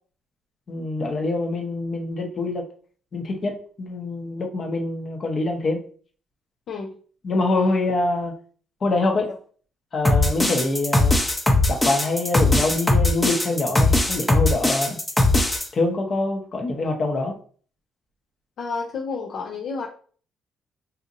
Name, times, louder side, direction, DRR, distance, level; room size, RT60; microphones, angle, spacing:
voice 1, 0.7-2.7 3.1-5.8 7.2-8.4 8.8-9.3 9.9-11.2 11.7-15.0 15.7-17.4, left 2 dB, 45° left, 3 dB, 0.9 m, -25 dB
sound 1, 10.0-15.6, left 2 dB, 15° left, 0.7 m, -19 dB
voice 2, 18.6-19.9, left 4 dB, 65° left, 0 dB, 0.5 m, -30 dB
4.1 x 2.5 x 2.6 m, 0.44 s
cardioid pair, 90°, 0 cm